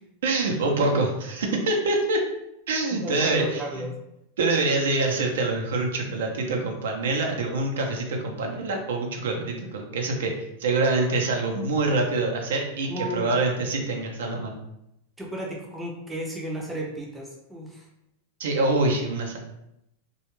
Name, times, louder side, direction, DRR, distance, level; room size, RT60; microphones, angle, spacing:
voice 1, 0.2-2.2 2.7-3.8 4.4-10.3 10.6-14.6 18.4-19.4, right 2 dB, 90° right, 1 dB, 0.6 m, -25 dB
voice 2, 2.9-4.0 12.9-13.3 15.2-17.8, equal, 5° right, -3 dB, 0.4 m, -33 dB
2.3 x 2.1 x 3.0 m, 0.82 s
supercardioid pair, 160°, 0 cm